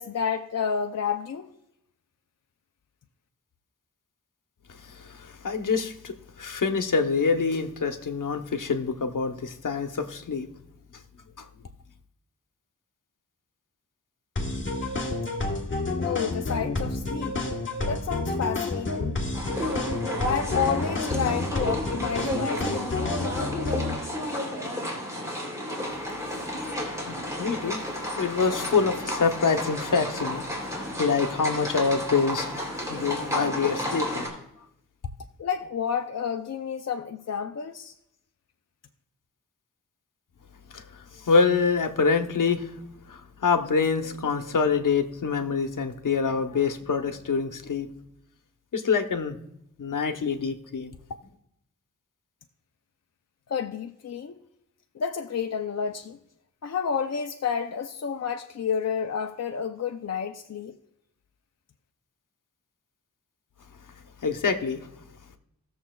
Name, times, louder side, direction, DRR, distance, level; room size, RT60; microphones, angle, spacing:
voice 1, 0.0-1.5 16.0-17.4 17.9-19.1 20.2-23.0 35.4-37.9 53.5-54.4 54.9-56.2 56.6-60.8, left 7 dB, 55° left, 0.6 m, -30 dB
voice 2, 4.7-10.5 11.4-11.5 26.3-26.7 27.1-27.8 28.2-34.3 40.7-42.8 43.1-47.9 48.7-49.4 49.8-50.9 64.2-64.9, left 5 dB, 75° left, 1.0 m, -26 dB
sound 1, 14.4-24.0, left 2 dB, 35° left, 1.3 m, -29 dB
sound 2, 19.3-34.3, equal, 10° right, 3.1 m, -32 dB
18.5 x 7.0 x 2.3 m
wide cardioid pair, 100°, 32 cm